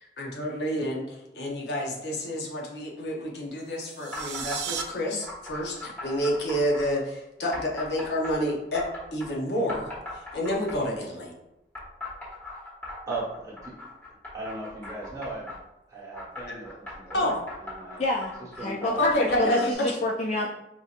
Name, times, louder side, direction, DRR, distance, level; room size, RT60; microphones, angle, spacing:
voice 1, 0.2-9.9 10.3-11.3 16.5-16.6 17.1-17.3 19.0-19.9, equal, 75° left, 0 dB, 0.7 m, -29 dB
sound 1, 3.8-4.8, right 9 dB, 80° right, 0.4 m, -35 dB
sound 2, 4.1-4.9 5.2-6.9 7.5-9.3 9.7-11.0 11.7-15.6 16.1-19.7, left 2 dB, 10° left, 1.2 m, -39 dB
voice 2, 13.1-13.7 14.3-15.5 15.9-18.0 18.4-19.1, right 2 dB, 20° right, -6 dB, 1.1 m, -37 dB
voice 3, 18.0-18.3 18.6-19.1 19.4-20.5, left 2 dB, 40° left, -2 dB, 0.3 m, -27 dB
4.5 x 2.7 x 2.4 m, 0.86 s
head